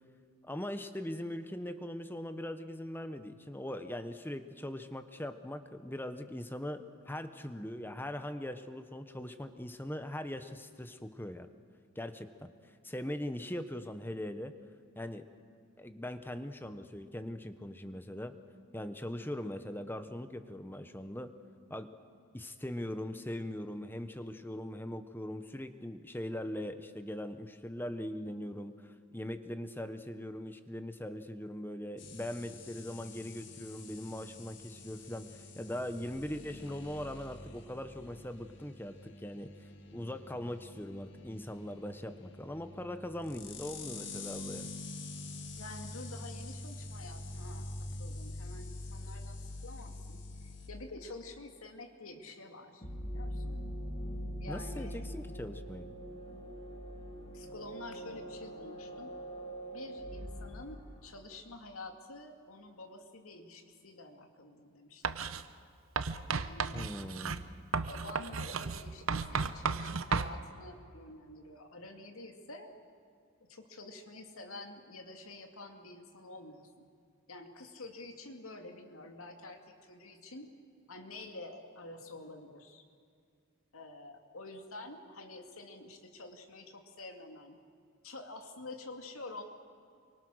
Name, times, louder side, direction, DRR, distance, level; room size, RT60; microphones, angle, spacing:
voice 1, 0.4-11.5 12.0-12.5 12.8-14.5 15.0-15.2 15.8-18.3 18.7-21.3 21.7-21.9 22.3-39.5 39.9-44.7 54.5-55.9 66.7-67.6, left 1 dB, 10° left, 9 dB, 1.0 m, -41 dB
sound 1, 32.0-50.7, left 2 dB, 55° left, 2.0 m, -46 dB
voice 2, 45.6-53.6 54.4-55.1 57.3-59.1 59.7-65.2 66.3-66.9 67.9-72.7 73.5-76.9 77.3-80.5 80.9-82.8 83.7-87.6 88.0-89.4, left 2 dB, 85° left, 4 dB, 2.5 m, -48 dB
sound 2, 52.8-61.4, equal, 30° left, 3.1 m, -42 dB
Writing, 65.0-65.4 66.0-70.3, right 5 dB, 75° right, 0.8 m, -34 dB
28.5 x 24.0 x 6.4 m, 2.2 s
head